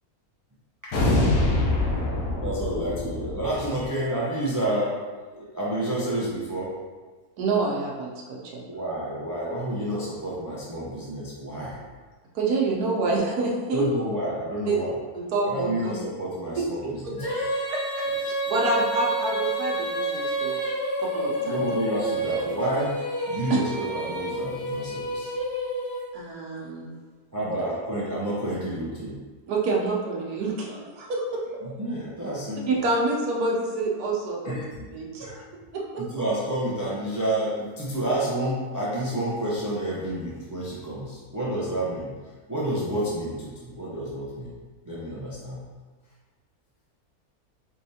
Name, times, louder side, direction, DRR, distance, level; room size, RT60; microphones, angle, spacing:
voice 1, 0.9-3.4, left 2 dB, 70° left, -2 dB, 1.2 m, -24 dB
voice 2, 2.4-5.0 5.3-6.7 8.7-11.8 13.7-14.9 15.4-17.2 21.4-22.9 23.3-25.3 27.3-29.2 31.6-32.8 34.4-34.9 35.2-35.3 36.0-42.2 42.5-44.5 44.8-45.6, right 1 dB, 20° right, -7 dB, 0.4 m, -29 dB
voice 3, 7.4-8.6 12.3-13.9 14.7-14.8 15.1-15.9 16.5-17.4 17.7-20.6 21.0-21.7 23.5-23.6 26.1-26.9 29.5-31.4 32.7-34.6 34.9-35.4 35.7-36.0, right 3 dB, 80° right, -2 dB, 1.3 m, -27 dB
Female singing, 17.2-26.3, right 1 dB, 20° left, 0.7 m, -29 dB
4.7 x 3.5 x 2.8 m, 1.3 s
omnidirectional pair, 1.6 m